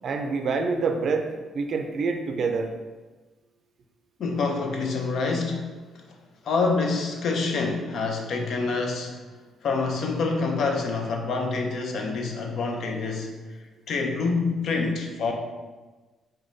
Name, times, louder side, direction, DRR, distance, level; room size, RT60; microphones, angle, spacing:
voice 1, 0.0-2.7, right 4 dB, 60° right, 5 dB, 0.4 m, -26 dB
voice 2, 4.2-6.2 6.4-9.2 9.6-13.4 13.9-15.3, left 4 dB, 65° left, 3 dB, 0.5 m, -27 dB
4.7 x 2.2 x 2.6 m, 1.3 s
cardioid pair, 90°, 0 cm